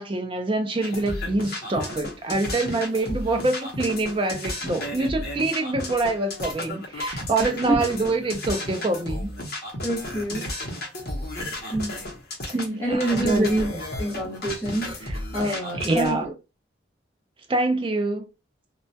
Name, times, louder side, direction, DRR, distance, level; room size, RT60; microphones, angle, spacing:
voice 1, 0.0-9.3 12.5-13.8 15.0-16.3 17.5-18.2, right 2 dB, 25° right, 0.4 m, -26 dB
sound 1, 0.8-16.2, left 1 dB, 50° left, 0.7 m, -33 dB
voice 2, 7.4-7.8 9.8-10.4 11.7-12.0 12.8-13.7 14.0-14.9 15.3-16.3, right 1 dB, 15° left, 0.9 m, -26 dB
2.2 x 2.1 x 2.6 m
head